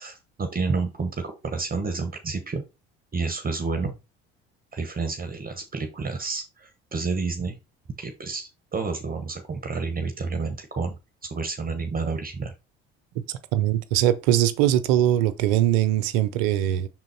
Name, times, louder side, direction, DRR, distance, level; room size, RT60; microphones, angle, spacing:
voice 1, 0.0-2.6 3.1-3.9 4.7-7.6 8.0-11.0 11.3-12.5, right 4 dB, 30° right, 1.2 m, -30 dB
voice 2, 13.5-16.9, right 12 dB, 80° right, 0.8 m, -21 dB
6.2 x 3.9 x 4.3 m
hypercardioid pair, 65°, 30 cm